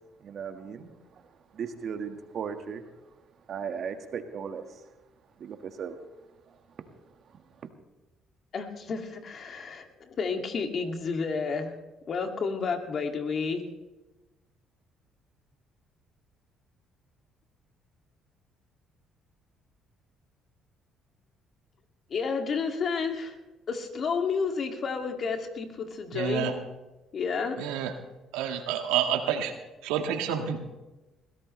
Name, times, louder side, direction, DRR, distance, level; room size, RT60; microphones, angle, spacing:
voice 1, 0.2-0.9 1.5-2.9 3.5-4.8 5.4-6.0 6.5-6.6 7.3-7.7, right 7 dB, 60° right, 7 dB, 1.7 m, -37 dB
voice 2, 8.5-11.8 12.1-13.6 22.1-23.4 23.7-26.5 27.1-27.6, left 5 dB, 55° left, 4 dB, 2.3 m, -31 dB
voice 3, 26.1-26.5 27.6-27.9 28.3-29.5 29.8-30.6, right 9 dB, 90° right, 5 dB, 1.6 m, -28 dB
21.0 x 16.0 x 3.3 m, 1.1 s
supercardioid pair, 75°, 0 cm